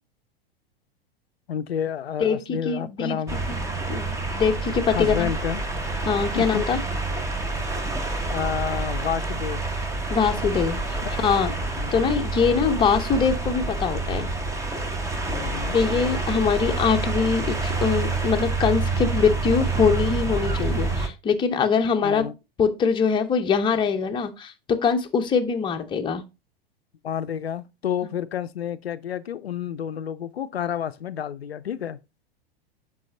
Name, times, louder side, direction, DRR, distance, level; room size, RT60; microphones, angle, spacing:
voice 1, 1.5-3.4 4.9-5.6 6.3-6.6 6.9-7.0 8.3-9.6 11.0-11.1 11.8-12.0 15.3-15.8 22.0-22.3 27.0-32.0, left 9 dB, 80° left, 0.5 m, -30 dB
voice 2, 2.2-3.2 3.5-3.6 3.9-5.3 6.1-6.8 10.1-11.5 11.9-14.3 15.7-22.3 22.6-26.2, left 6 dB, 15° left, 0.8 m, -23 dB
sound 1, 3.3-21.1, right 3 dB, 10° right, 1.0 m, -27 dB
7.6 x 5.5 x 2.7 m
figure-of-eight pair, 100°, 30 cm